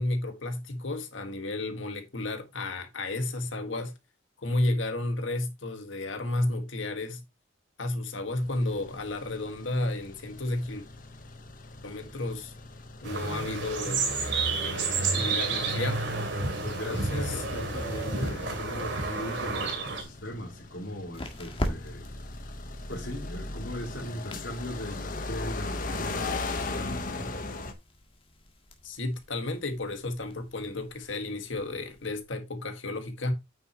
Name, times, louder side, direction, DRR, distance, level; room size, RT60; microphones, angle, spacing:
voice 1, 0.0-3.9 4.4-7.2 7.8-10.9 11.8-12.5 13.0-16.0 16.6-17.4 18.2-18.5 28.8-33.3, left 2 dB, 90° left, 1.8 m, -32 dB
sound 1, 8.3-27.7, left 3 dB, 45° left, 1.2 m, -39 dB
sound 2, 13.0-20.0, right 3 dB, 70° right, 2.7 m, -30 dB
voice 2, 16.6-22.0 22.9-27.3, equal, 70° left, 3.0 m, -39 dB
sound 3, 19.8-32.2, equal, 30° left, 1.7 m, -43 dB
9.0 x 6.5 x 3.0 m
head